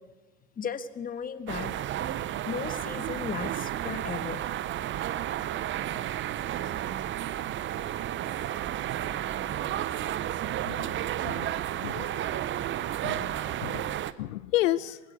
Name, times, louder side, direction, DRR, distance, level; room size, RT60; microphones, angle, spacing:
voice 1, 0.6-1.7 2.4-4.4, left 7 dB, 20° left, 12 dB, 1.5 m, -35 dB
sound 1, 1.5-14.1, right 12 dB, 30° right, 0.9 m, -32 dB
voice 2, 11.2-12.4 13.0-15.0, left 15 dB, 65° left, 17 dB, 0.8 m, -32 dB
25.0 x 20.5 x 8.3 m, 1.2 s
hypercardioid pair, 105°, 42 cm